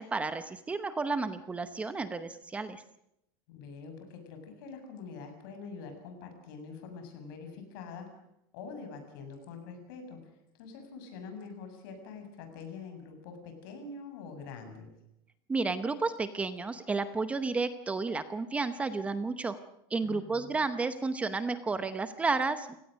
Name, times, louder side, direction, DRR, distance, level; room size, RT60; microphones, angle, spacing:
voice 1, 0.0-2.8 15.5-19.6 19.9-22.7, right 3 dB, 10° right, 11 dB, 0.8 m, -32 dB
voice 2, 3.5-8.2 8.5-10.2 10.5-14.9 20.0-20.6, left 5 dB, 65° left, 6 dB, 7.0 m, -45 dB
29.5 x 18.0 x 6.4 m, 0.81 s
supercardioid pair, 170°, 12 cm